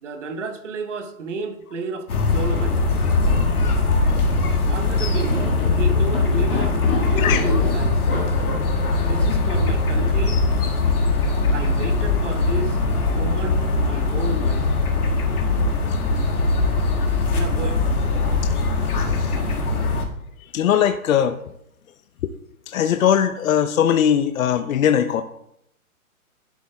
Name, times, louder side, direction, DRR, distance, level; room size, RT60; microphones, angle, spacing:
voice 1, 0.0-2.8 4.7-8.1 9.0-10.4 11.5-12.8 13.1-14.7 17.3-17.9, right 4 dB, 55° right, 7 dB, 1.2 m, -32 dB
sound 1, 2.1-20.1, left 3 dB, 85° left, 1.8 m, -21 dB
sound 2, 2.5-2.8 3.1-3.7 4.1-4.2 4.4-4.5 5.3-7.7 8.1-8.3, left 3 dB, 15° left, 2.1 m, -27 dB
voice 2, 20.5-21.4 22.7-25.2, left 9 dB, 65° left, 9 dB, 0.6 m, -19 dB
11.0 x 7.2 x 2.2 m, 0.78 s
hypercardioid pair, 155°, 43 cm